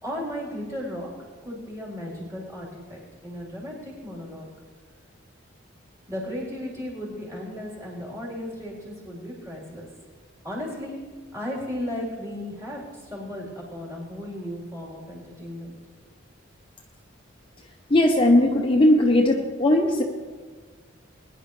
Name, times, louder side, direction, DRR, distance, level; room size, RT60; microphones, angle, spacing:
voice 1, 0.0-4.5 6.1-9.9 10.4-11.0 11.3-15.8, left 1 dB, 15° right, -5 dB, 4.0 m, -35 dB
voice 2, 17.9-20.0, left 1 dB, 25° left, 1 dB, 0.8 m, -18 dB
21.5 x 10.5 x 3.3 m, 1.5 s
head